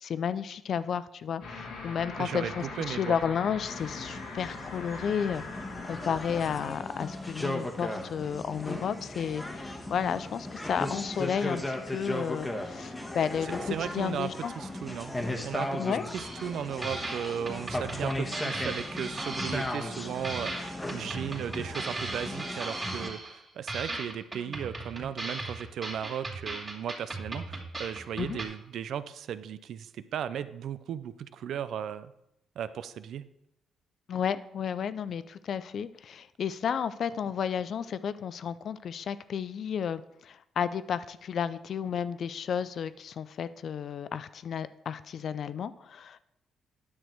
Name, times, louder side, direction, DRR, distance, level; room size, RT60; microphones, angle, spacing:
voice 1, 0.0-14.5 15.8-16.0 28.2-28.4 34.1-46.2, left 7 dB, 60° left, 15 dB, 0.4 m, -32 dB
sound 1, 1.4-6.7, left 3 dB, 80° left, 1.7 m, -41 dB
voice 2, 2.2-3.2 13.7-14.3 14.6-15.2 15.4-32.1 32.6-33.2, right 9 dB, 70° right, 13 dB, 0.5 m, -36 dB
sound 2, 3.7-23.1, left 1 dB, 15° left, 1.2 m, -37 dB
sound 3, 16.1-16.6 16.8-20.0 20.2-23.4 23.7-28.4, right 2 dB, 25° right, 2.5 m, -38 dB
9.5 x 6.3 x 4.5 m, 0.81 s
cardioid pair, 90°, 0 cm